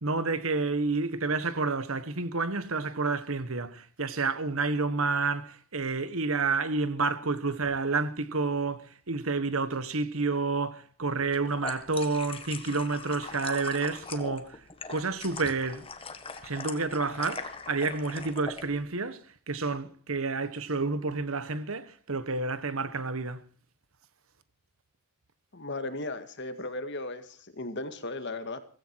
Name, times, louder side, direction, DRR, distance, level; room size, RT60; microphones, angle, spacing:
voice 1, 0.0-14.6 14.9-15.9 16.4-19.2 19.5-23.4, right 3 dB, 70° right, 1.4 m, -29 dB
sound 1, 11.2-18.6, left 4 dB, 25° left, 1.6 m, -41 dB
voice 2, 25.5-28.6, left 2 dB, 55° left, 1.9 m, -36 dB
16.5 x 16.5 x 4.7 m
head